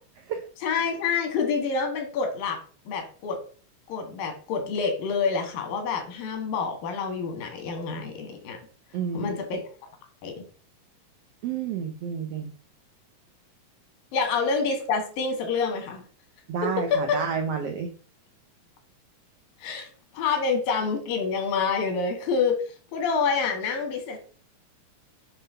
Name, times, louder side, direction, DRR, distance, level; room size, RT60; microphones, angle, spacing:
voice 1, 0.6-2.6 2.9-3.4 3.9-8.6 9.1-9.6 10.2-10.4 14.1-16.0 16.6-17.2 19.6-19.9 20.1-22.6 22.9-24.2, left 5 dB, 85° left, 4 dB, 3.3 m, -27 dB
voice 2, 8.9-9.4 11.4-12.5 16.5-17.9, right 7 dB, 85° right, 5 dB, 1.3 m, -30 dB
8.0 x 3.3 x 5.6 m, 0.41 s
omnidirectional pair, 3.9 m